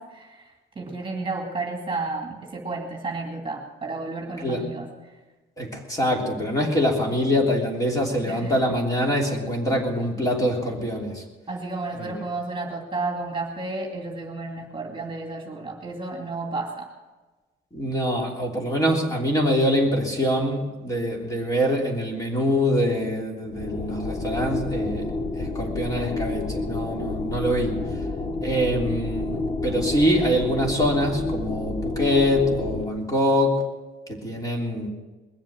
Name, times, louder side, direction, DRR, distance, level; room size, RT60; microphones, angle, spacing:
voice 1, 0.0-5.2 8.3-8.5 11.5-16.9, right 3 dB, 25° right, 1 dB, 2.5 m, -32 dB
voice 2, 5.6-11.2 12.0-12.1 17.7-27.8 28.4-33.6 34.1-34.9, equal, 15° left, 0 dB, 3.3 m, -24 dB
sound 1, 23.5-32.8, left 2 dB, 30° left, 1.1 m, -29 dB
21.0 x 7.4 x 7.6 m, 1.2 s
cardioid pair, 110°, 21 cm